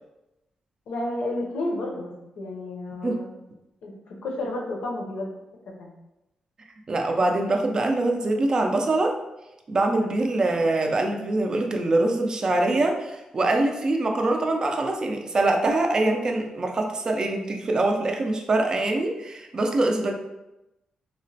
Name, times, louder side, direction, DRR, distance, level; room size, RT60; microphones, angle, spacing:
voice 1, 0.9-3.3 3.8-5.3 5.8-5.9, left 2 dB, 80° left, 0 dB, 0.6 m, -31 dB
voice 2, 6.9-9.2 9.7-20.1, right 2 dB, 35° right, 3 dB, 0.3 m, -24 dB
2.9 x 2.1 x 2.6 m, 0.95 s
cardioid pair, 120°, 2 cm